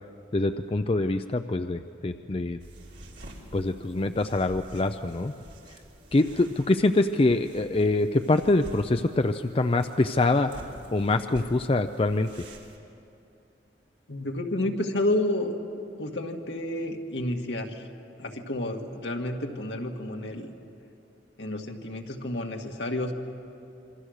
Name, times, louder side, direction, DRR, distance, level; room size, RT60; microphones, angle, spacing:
voice 1, 0.3-2.6 3.5-5.3 6.1-10.5 10.9-12.5, left 2 dB, 30° left, 8 dB, 0.5 m, -24 dB
sound 1, 2.6-12.8, right 1 dB, 75° right, 3.2 m, -48 dB
voice 2, 14.1-15.5 16.0-17.9 18.2-20.5 21.4-23.1, left 1 dB, 75° left, 3 dB, 1.9 m, -30 dB
26.5 x 24.5 x 6.5 m, 2.7 s
head